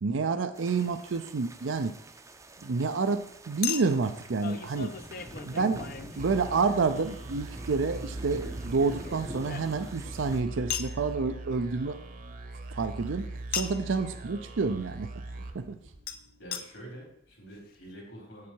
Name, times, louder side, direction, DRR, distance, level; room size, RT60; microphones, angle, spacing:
voice 1, 0.0-1.9 2.6-4.9 5.4-12.0 12.7-15.2 15.5-15.8, right 4 dB, 85° right, 9 dB, 0.5 m, -29 dB
sound 1, 0.5-10.4, right 1 dB, 15° right, 0.5 m, -45 dB
Chink clink, 0.8-1.0 3.6-6.8 8.4-10.1 10.7-11.0 13.5-13.9 16.1-16.2 16.5-16.6 17.3-17.4 17.5-17.6, left 8 dB, 50° left, 0.6 m, -37 dB
sound 2, 6.2-16.5, right 2 dB, 45° right, 0.9 m, -41 dB
voice 2, 15.2-15.5 16.4-18.5, right 1 dB, 70° left, -2 dB, 3.9 m, -47 dB
8.2 x 7.3 x 4.5 m, 0.71 s
head